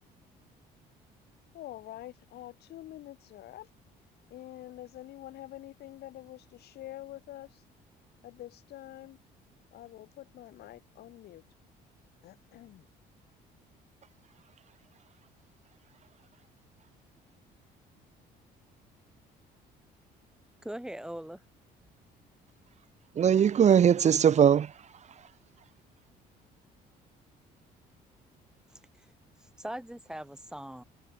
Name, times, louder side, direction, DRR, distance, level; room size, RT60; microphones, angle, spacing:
voice 1, 1.5-3.7 4.3-7.6 8.2-9.2 9.7-11.4 12.2-12.8, left 14 dB, 70° left, 4.8 m, -46 dB
voice 2, 20.6-21.4 28.7-29.1 29.4-30.8, right 1 dB, 5° right, 6.2 m, -41 dB
voice 3, 23.1-25.3, right 8 dB, 40° right, 1.4 m, -22 dB
cardioid pair, 110°, 17 cm